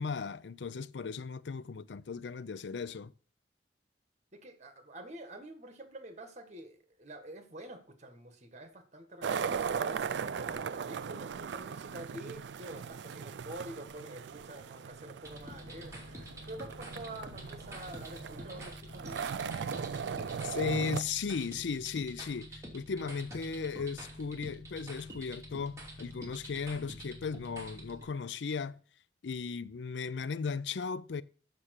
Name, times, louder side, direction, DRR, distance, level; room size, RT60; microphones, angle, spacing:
voice 1, 0.0-3.1 20.4-28.8 29.2-31.2, left 5 dB, 85° left, 0.5 m, -36 dB
voice 2, 4.3-19.5, right 1 dB, 40° right, 1.7 m, -47 dB
sound 1, 9.2-21.0, right 6 dB, 80° right, 0.4 m, -38 dB
sound 2, 15.2-28.0, equal, 20° right, 2.7 m, -47 dB
7.3 x 6.8 x 6.6 m
head